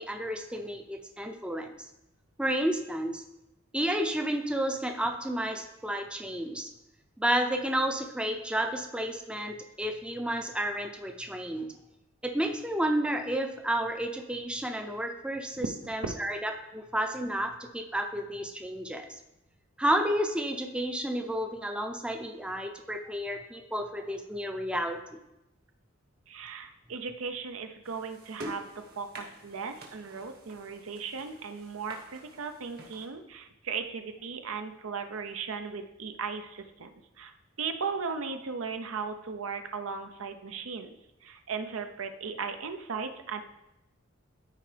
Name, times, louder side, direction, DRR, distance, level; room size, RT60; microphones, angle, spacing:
voice 1, 0.0-1.7 2.4-3.2 3.7-6.7 7.2-11.7 12.2-19.1 19.8-25.0, right 1 dB, 5° right, 5 dB, 0.5 m, -31 dB
voice 2, 26.3-28.7 29.0-36.9 37.2-37.3 37.6-41.0 41.2-43.4, right 5 dB, 75° right, 7 dB, 0.6 m, -37 dB
sound 1, 27.8-33.1, right 1 dB, 50° right, 1.3 m, -47 dB
12.5 x 4.6 x 3.3 m, 0.91 s
head